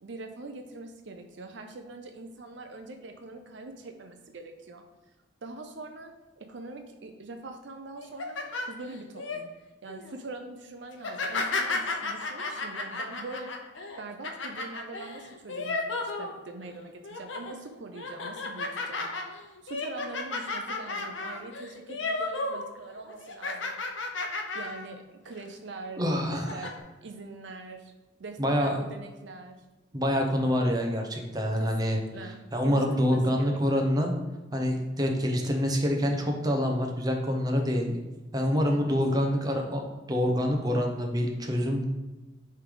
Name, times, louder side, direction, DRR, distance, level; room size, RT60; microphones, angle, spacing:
voice 1, 0.0-4.8 5.4-8.4 8.7-9.5 9.8-13.5 14.0-19.1 19.6-23.8 24.5-27.9 28.2-29.6 31.6-33.9 38.7-39.0, right 3 dB, 65° right, 5 dB, 0.5 m, -43 dB
sound 1, 8.0-9.4 9.9-10.2 10.9-16.7 17.0-17.5 17.9-22.7 22.9-24.9 25.3-25.4 26.1-26.7, left 3 dB, 75° left, 0.8 m, -33 dB
voice 2, 26.0-26.7 28.4-28.8 29.9-32.0 32.5-34.1 34.5-38.0 38.3-41.8, equal, 20° right, 1 dB, 0.8 m, -26 dB
9.2 x 3.3 x 3.8 m, 1.1 s
head